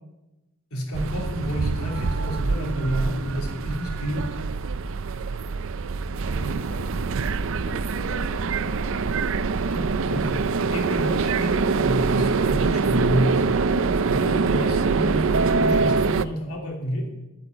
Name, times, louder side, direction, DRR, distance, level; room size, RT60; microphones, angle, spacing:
voice 1, 0.7-4.4 9.7-13.5 14.1-17.1, equal, 75° left, 3.1 m, -29 dB
sound 1, 0.9-16.2, right 4 dB, 60° right, 0.5 m, -24 dB
voice 2, 6.1-7.3 7.6-8.9, equal, 40° left, 2.2 m, -42 dB
11.0 x 8.6 x 9.1 m
head